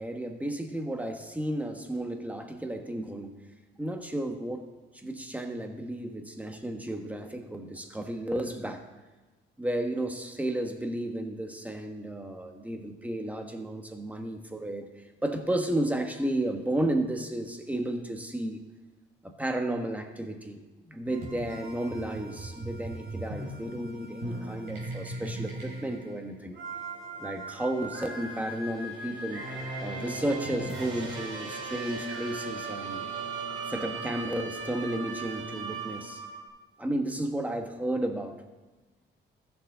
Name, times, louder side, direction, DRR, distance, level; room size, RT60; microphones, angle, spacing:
voice 1, 0.0-3.4 3.8-4.6 4.9-8.8 9.6-14.9 15.2-18.6 19.2-20.6 20.9-26.6 27.2-29.5 29.8-33.1 33.7-36.2 36.8-38.4, right 1 dB, 5° right, 5 dB, 1.3 m, -33 dB
sound 1, 21.1-36.5, right 3 dB, 70° right, 3.2 m, -38 dB
14.5 x 7.1 x 3.8 m, 1.2 s
cardioid pair, 90°, 20 cm